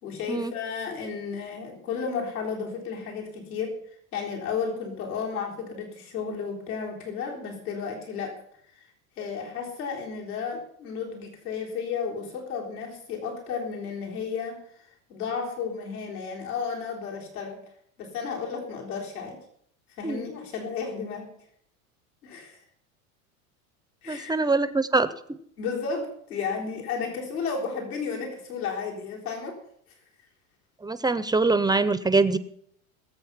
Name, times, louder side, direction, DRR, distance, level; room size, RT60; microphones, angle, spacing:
voice 1, 0.0-8.4 8.7-8.9 9.2-17.6 18.0-19.4 20.0-21.3 22.2-22.6 24.0-24.4 25.6-29.6, left 5 dB, 80° left, -1 dB, 3.9 m, -33 dB
voice 2, 24.1-25.4 30.8-32.4, right 3 dB, 10° right, 14 dB, 0.6 m, -24 dB
20.5 x 7.8 x 5.8 m, 0.68 s
hypercardioid pair, 100°, 44 cm